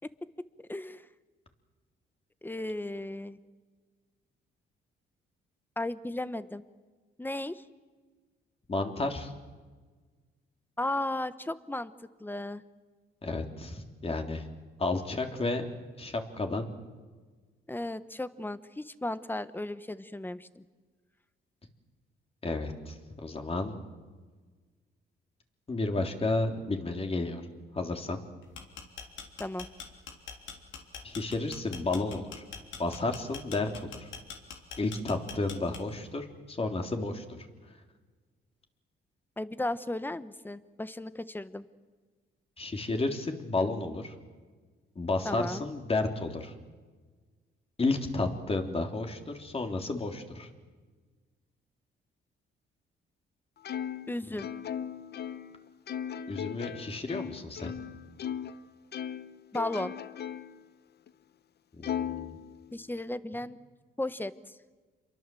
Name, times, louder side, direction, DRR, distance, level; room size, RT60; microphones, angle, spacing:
voice 1, 0.7-1.0 2.4-3.4 5.8-6.6 7.2-7.6 10.8-11.9 12.2-12.6 17.7-20.6 29.4-29.7 39.4-41.6 45.2-45.7 54.1-54.5 59.5-59.9 62.7-63.6 64.0-64.6, left 1 dB, 10° left, 13 dB, 1.2 m, -35 dB
voice 2, 8.7-9.3 13.2-14.5 14.8-15.6 16.0-16.7 22.4-23.7 25.7-27.4 27.7-28.2 31.0-32.4 32.8-33.7 34.0-34.1 34.8-37.4 42.6-44.1 44.9-46.5 47.8-50.5 56.3-57.7 61.8-62.3, left 2 dB, 30° left, 4 dB, 3.4 m, -32 dB
sound 1, 28.4-36.1, left 6 dB, 70° left, 3.4 m, -43 dB
Plucked string instrument, 53.6-58.6 58.9-60.6 61.1-61.2 61.8-63.0, left 9 dB, 55° left, 0.9 m, -38 dB
27.5 x 23.0 x 7.8 m, 1.4 s
cardioid pair, 90°, 20 cm